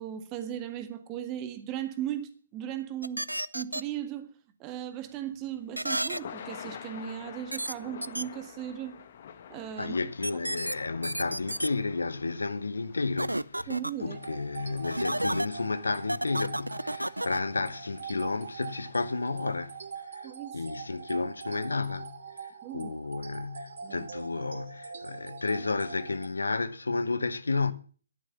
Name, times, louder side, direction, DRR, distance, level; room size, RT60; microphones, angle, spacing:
voice 1, 0.0-3.2 3.5-4.3 4.6-9.0 9.5-9.9 13.7-14.2 20.2-20.6 22.6-22.9 23.8-24.1, right 10 dB, 20° right, 1.7 m, -37 dB
sound 1, 3.0-3.8 5.8-6.2 7.5-7.7 8.0-8.2 10.2-10.7 11.0-11.7 13.2-13.9 14.8-15.5 16.1-17.4, right 1 dB, 85° right, 0.6 m, -31 dB
Thunder / Rain, 5.1-19.4, left 8 dB, 40° left, 1.5 m, -49 dB
voice 2, 9.8-13.7 14.0-27.7, left 3 dB, 70° left, 1.0 m, -32 dB
sound 2, 14.1-26.3, right 6 dB, 55° right, 2.2 m, -43 dB
14.0 x 11.0 x 7.1 m
figure-of-eight pair, 135°, 0 cm